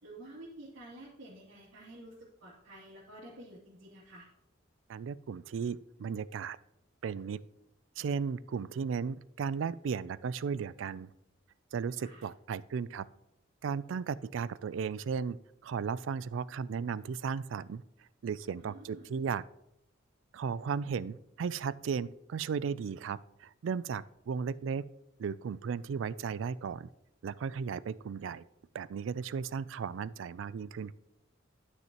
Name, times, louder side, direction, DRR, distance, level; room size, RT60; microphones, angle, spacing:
voice 1, 0.0-4.3 12.0-12.3 18.6-19.1, right 1 dB, 90° right, -11 dB, 3.0 m, -50 dB
voice 2, 4.9-6.6 7.0-7.4 8.0-11.1 11.7-13.1 13.6-15.4 15.6-17.8 18.2-19.4 20.3-24.8 25.2-26.9 27.2-28.4 28.7-30.9, right 6 dB, 75° right, 18 dB, 0.3 m, -35 dB
12.0 x 6.5 x 2.9 m, 0.85 s
head